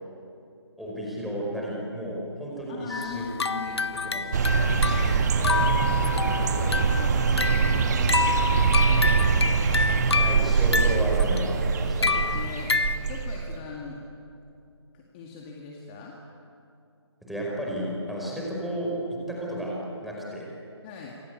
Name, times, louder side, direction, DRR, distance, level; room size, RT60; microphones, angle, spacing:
voice 1, 0.8-3.4 3.7-5.1 10.1-12.1 17.2-19.8 20.0-20.5, right 1 dB, ahead, -4 dB, 4.9 m, -33 dB
voice 2, 2.7-3.8 5.0-5.7 6.0-9.1 12.0-14.0 14.9-16.2 20.8-21.2, left 5 dB, 20° left, -1 dB, 2.2 m, -40 dB
sound 1, 2.9-13.0, left 4 dB, 65° left, 1.0 m, -28 dB
sound 2, 4.3-13.5, right 5 dB, 35° right, 1.7 m, -23 dB
27.5 x 24.0 x 8.4 m, 2.6 s
figure-of-eight pair, 150°, 15 cm